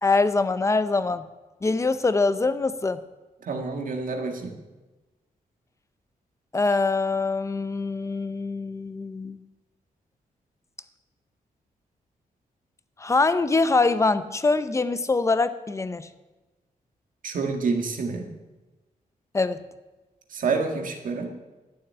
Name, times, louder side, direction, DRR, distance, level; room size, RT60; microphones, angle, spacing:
voice 1, 0.0-1.3 1.6-3.0 6.5-9.4 13.0-16.1 19.3-19.6, left 3 dB, 20° left, 12 dB, 0.6 m, -23 dB
voice 2, 3.4-4.6 17.2-18.3 20.3-21.3, right 4 dB, 65° right, 4 dB, 2.0 m, -28 dB
12.5 x 7.2 x 9.9 m, 1.2 s
wide cardioid pair, 170°, 15 cm